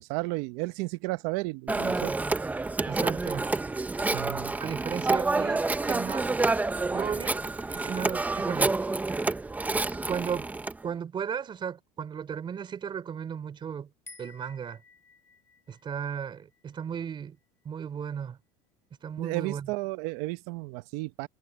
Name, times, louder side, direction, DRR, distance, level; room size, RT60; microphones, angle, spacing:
voice 1, 0.0-2.1 4.1-4.5 19.2-21.3, right 22 dB, 70° right, 1.0 m, -33 dB
Telephone, 1.7-10.8, right 3 dB, 10° right, 0.8 m, -28 dB
voice 2, 2.9-3.5 4.1-4.2 4.6-6.3 6.8-8.8 10.1-10.5 10.8-13.9 14.2-14.8 15.7-17.4 17.7-18.4 19.0-19.7, right 7 dB, 30° right, 3.6 m, -35 dB
sound 1, 14.1-17.4, left 3 dB, 15° left, 3.6 m, -54 dB
supercardioid pair, 120°, 16 cm